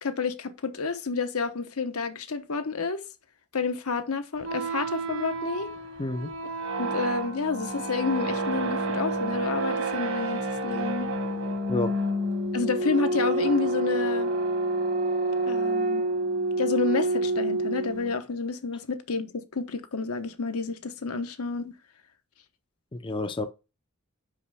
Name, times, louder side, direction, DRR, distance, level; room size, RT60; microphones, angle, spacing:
voice 1, 0.0-3.0 3.5-5.7 6.8-11.1 12.5-14.3 15.5-16.0 16.6-21.7, left 4 dB, 80° left, 1.0 m, -30 dB
sound 1, 4.4-18.1, right 2 dB, 65° right, 1.4 m, -28 dB
voice 2, 6.0-6.3 11.7-12.0 22.9-23.5, left 2 dB, 20° left, 0.4 m, -29 dB
5.7 x 5.4 x 4.9 m
head